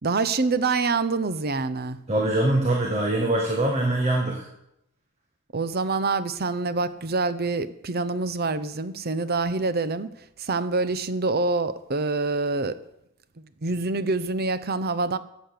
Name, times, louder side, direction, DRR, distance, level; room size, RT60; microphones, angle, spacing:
voice 1, 0.0-2.0 5.5-10.1 10.4-12.8 13.6-15.2, right 3 dB, 45° right, 13 dB, 0.8 m, -26 dB
voice 2, 2.1-4.5, right 1 dB, 30° right, 0 dB, 1.7 m, -23 dB
14.0 x 8.6 x 6.6 m, 0.81 s
head